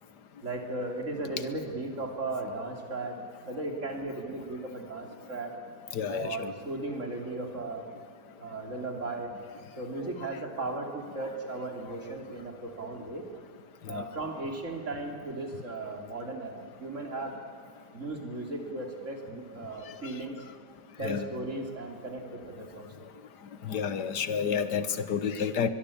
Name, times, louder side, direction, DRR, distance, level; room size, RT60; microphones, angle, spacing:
voice 1, 0.4-3.1 3.4-5.5 6.1-7.9 8.4-9.3 9.8-13.3 13.9-17.3 17.9-20.4 21.0-22.9, right 2 dB, 50° right, 3 dB, 3.5 m, -36 dB
voice 2, 5.9-6.5 13.8-14.1 19.9-20.0 21.0-21.3 23.6-25.7, left 7 dB, 85° left, 12 dB, 1.8 m, -30 dB
22.5 x 22.0 x 8.6 m, 2.1 s
omnidirectional pair, 1.7 m